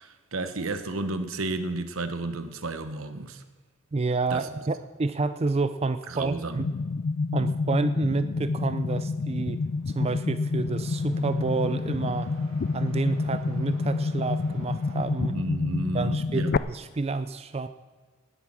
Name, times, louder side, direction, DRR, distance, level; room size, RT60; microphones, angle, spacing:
voice 1, 0.0-3.4 4.3-4.5 6.1-6.6 15.3-16.5, right 2 dB, 85° right, 10 dB, 1.1 m, -32 dB
voice 2, 3.9-6.7 7.3-9.6 9.9-12.3 12.7-15.3 15.9-17.7, right 3 dB, 30° right, 12 dB, 0.4 m, -29 dB
sound 1, 6.6-16.6, left 3 dB, 50° left, 0.4 m, -28 dB
sound 2, 9.2-16.2, right 1 dB, 70° right, 2.2 m, -52 dB
18.5 x 8.4 x 6.1 m, 1.4 s
head